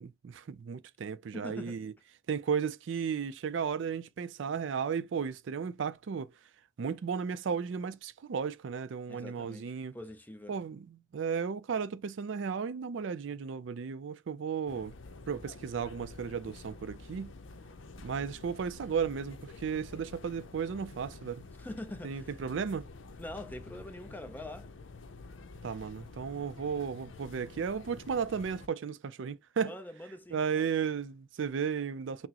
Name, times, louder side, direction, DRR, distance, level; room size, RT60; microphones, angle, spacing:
voice 1, 0.0-1.9 2.3-6.3 6.8-9.9 10.5-14.9 15.3-17.3 18.0-21.4 22.0-22.9 25.6-29.7 30.3-32.3, right 6 dB, 80° right, 0.4 m, -34 dB
voice 2, 1.3-1.8 9.1-10.6 21.6-22.4 23.2-24.7 29.6-30.7, left 1 dB, 10° left, 0.5 m, -44 dB
sound 1, 14.7-28.7, left 3 dB, 85° left, 0.6 m, -49 dB
5.9 x 2.0 x 2.8 m
head